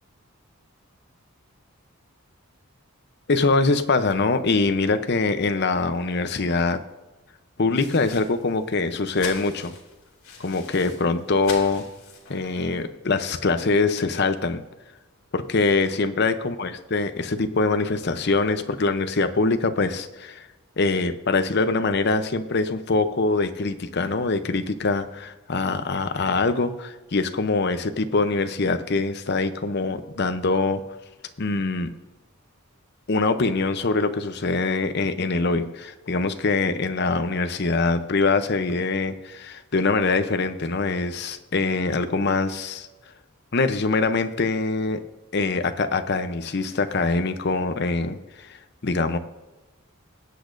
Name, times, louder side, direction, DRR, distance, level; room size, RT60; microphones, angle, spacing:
voice 1, 3.3-6.8 7.6-9.7 10.4-11.8 12.3-14.6 15.3-20.5 20.8-30.8 31.4-31.9 33.1-42.9 43.5-45.0 45.3-49.2, left 3 dB, 50° left, 9 dB, 0.7 m, -23 dB
sound 1, 7.7-12.8, left 4 dB, 75° left, 2.5 m, -42 dB
20.5 x 8.3 x 2.6 m, 1.1 s
head